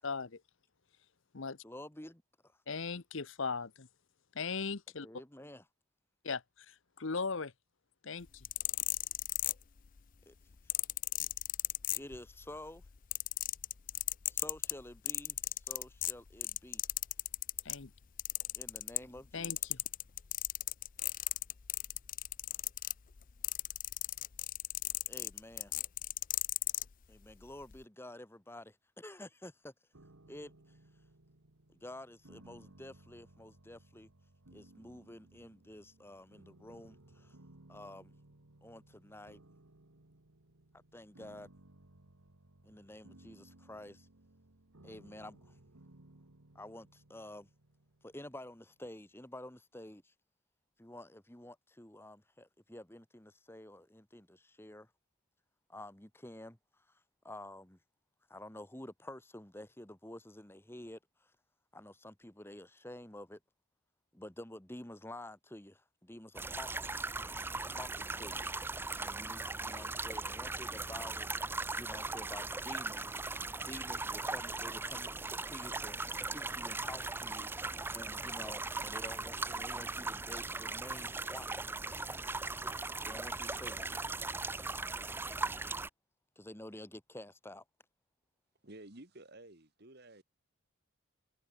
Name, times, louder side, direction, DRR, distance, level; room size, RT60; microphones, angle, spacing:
voice 1, 0.0-0.4 1.3-1.6 2.7-3.9 4.3-5.1 6.2-7.5 8.0-8.4 17.6-17.9 19.3-19.8, left 4 dB, 60° left, 0.9 m, -38 dB
voice 2, 1.6-2.2 5.0-5.6 10.3-10.4 12.0-12.8 14.3-16.9 18.6-19.5 25.1-25.8 27.1-29.7 30.3-30.8 31.7-34.1 34.5-37.4 37.7-38.1 38.6-39.4 40.9-41.5 42.6-44.1 44.8-45.5 46.5-47.5 48.0-50.1 50.8-54.9 55.7-56.6 56.9-57.8 58.3-61.3 61.7-63.4 64.1-66.9 67.7-68.5 69.0-71.3 71.7-73.2 73.6-81.6 83.0-83.9 86.3-87.6, left 1 dB, 10° left, 1.4 m, -50 dB
sound 1, 8.3-10.0 10.7-12.4 12.8-17.8 18.2-19.2 19.4-26.9 27.6-27.8, left 16 dB, 40° left, 0.5 m, -35 dB
sound 2, 29.9-48.9, right 1 dB, 75° right, 1.9 m, -61 dB
sound 3, 66.3-85.9, right 3 dB, 10° right, 0.5 m, -39 dB
voice 3, 88.6-90.2, right 1 dB, 45° right, 2.2 m, -53 dB
head